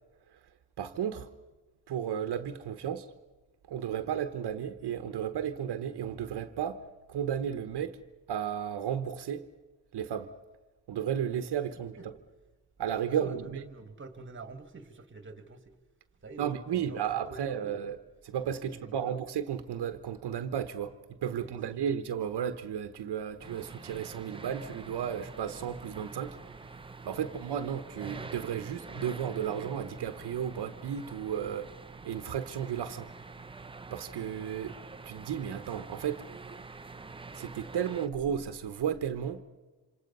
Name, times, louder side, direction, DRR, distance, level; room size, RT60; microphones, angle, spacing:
voice 1, 0.8-1.3 1.9-3.1 3.7-6.8 7.1-8.0 8.3-9.4 9.9-10.3 10.9-12.1 12.8-13.6 16.4-18.0 18.2-20.9 21.2-26.4 27.0-31.7 32.0-33.1 33.9-34.8 35.0-36.3 37.3-39.4, right 9 dB, 70° right, 1.1 m, -33 dB
voice 2, 13.1-15.7 16.2-16.5 16.7-17.8 18.5-19.2 21.3-21.9 27.0-27.4, right 3 dB, 30° right, 1.7 m, -47 dB
sound 1, 23.4-38.1, right 3 dB, 15° right, 0.7 m, -46 dB
27.5 x 26.5 x 5.5 m
wide cardioid pair, 155°, 42 cm